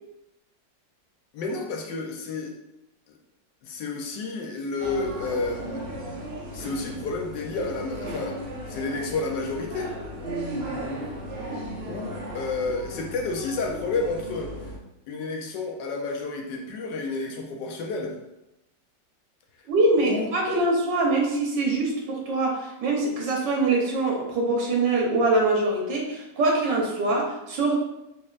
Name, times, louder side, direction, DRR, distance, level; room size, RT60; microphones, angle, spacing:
voice 1, 1.3-2.5 3.1-3.2 3.6-5.9 6.5-9.9 11.9-14.7 15.1-18.1 20.0-20.5, left 3 dB, 80° left, 1 dB, 1.3 m, -31 dB
sound 1, 4.8-14.8, equal, 50° right, 0.8 m, -36 dB
voice 2, 19.7-27.8, right 2 dB, 80° right, -1 dB, 1.5 m, -24 dB
4.1 x 3.3 x 2.4 m, 0.92 s
omnidirectional pair, 1.9 m